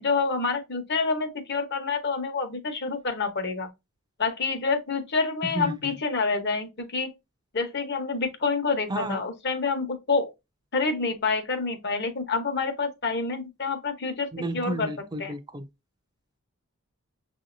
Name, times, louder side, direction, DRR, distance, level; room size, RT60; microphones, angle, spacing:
voice 1, 0.0-3.7 4.2-7.1 7.5-10.3 10.7-14.3 14.5-14.9 15.2-15.3, left 4 dB, 50° left, 1.0 m, -27 dB
voice 2, 5.4-5.9 8.9-9.2 14.3-15.7, right 1 dB, 20° right, 0.4 m, -32 dB
6.6 x 2.7 x 2.6 m
head